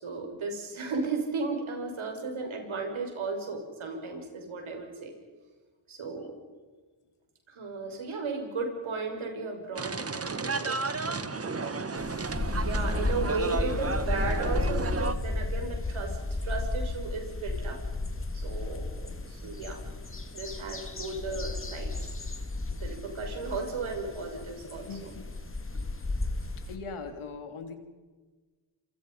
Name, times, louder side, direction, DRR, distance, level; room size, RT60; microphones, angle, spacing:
voice 1, 0.0-5.1 5.9-6.4 7.5-10.8 11.4-11.9 12.4-17.8 18.3-19.8 20.3-22.1 22.8-24.9 25.7-25.8, right 3 dB, 75° right, 3 dB, 5.8 m, -35 dB
sound 1, 9.8-15.2, right 4 dB, 30° right, 1.5 m, -33 dB
sound 2, 12.0-26.7, left 2 dB, 25° left, 2.5 m, -33 dB
voice 2, 24.6-25.3 26.7-27.8, left 4 dB, 90° left, 6 dB, 3.1 m, -40 dB
27.5 x 26.0 x 5.4 m, 1.4 s
cardioid pair, 80°, 48 cm